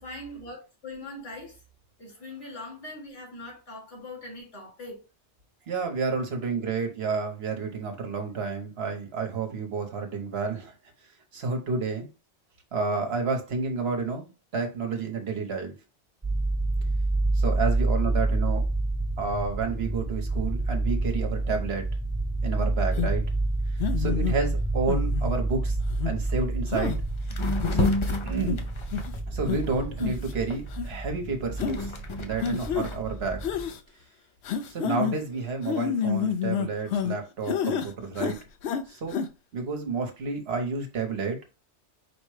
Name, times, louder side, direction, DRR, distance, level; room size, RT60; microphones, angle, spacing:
voice 1, 0.0-1.6 2.0-5.0, left 2 dB, 90° left, 2.5 m, -41 dB
voice 2, 5.7-10.7 11.3-12.1 12.7-15.7 17.4-18.6 19.2-21.9 22.4-23.3 24.0-25.8 26.0-27.0 27.7-27.9 28.2-28.6 29.3-31.9 32.2-33.4 34.7-38.4 38.9-39.1 39.5-41.4, right 4 dB, 65° right, 1.2 m, -30 dB
sound 1, 16.2-33.7, right 2 dB, 15° right, 0.9 m, -28 dB
sound 2, 23.0-23.1 23.8-24.4 24.9-25.3 25.9-26.1 26.7-27.0 27.5-27.9 28.5-28.6 28.9-29.1 29.5-29.6 30.0-30.3 30.7-30.9 31.6-31.8 32.4-32.9 33.4-33.8 34.4-35.2 35.6-37.2 37.5-37.9 38.2-38.8 39.1-39.3, left 7 dB, 70° left, 0.8 m, -29 dB
sound 3, 26.3-26.4 26.8-27.0 27.3-30.0 30.5-33.0, left 3 dB, 35° left, 0.5 m, -30 dB
4.9 x 2.2 x 4.8 m
omnidirectional pair, 1.2 m